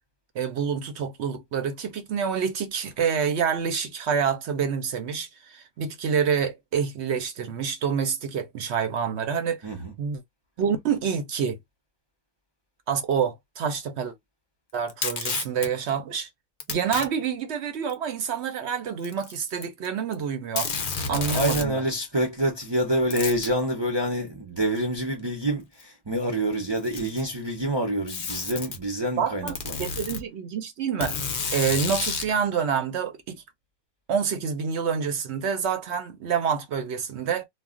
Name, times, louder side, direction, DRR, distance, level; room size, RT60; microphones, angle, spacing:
voice 1, 0.3-9.7 10.0-10.2 10.6-11.6 12.9-14.1 14.7-16.3 16.7-20.7 21.1-21.8 29.2-31.2 31.5-33.4 34.1-37.5, right 7 dB, 60° right, 0.8 m, -27 dB
Packing tape duct tape, 14.9-15.7 16.6-17.1 17.9-18.0 19.0-19.9 20.1-20.2 20.6-21.7 23.1-23.5 24.8-24.9 25.8-25.9 26.7-27.3 28.1-28.8 29.5-30.2 31.0-32.3, left 5 dB, 65° left, 0.4 m, -30 dB
voice 2, 21.0-29.8, right 1 dB, 40° right, 0.4 m, -27 dB
2.3 x 2.2 x 3.5 m
omnidirectional pair, 1.5 m